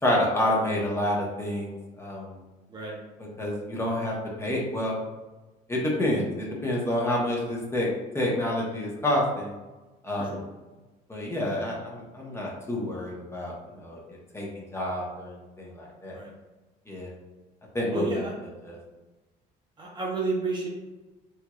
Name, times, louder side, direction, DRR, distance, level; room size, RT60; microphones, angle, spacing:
voice 1, 0.0-2.4 3.4-5.0 5.7-7.9 8.1-9.5 10.0-10.4 11.1-16.2 16.9-17.1 17.7-18.2 18.6-18.8, left 1 dB, 15° left, -3 dB, 0.9 m, -28 dB
voice 2, 17.9-18.3 19.8-20.7, right 3 dB, 25° right, -2 dB, 0.6 m, -31 dB
3.5 x 3.0 x 2.3 m, 1.2 s
cardioid pair, 110°, 17 cm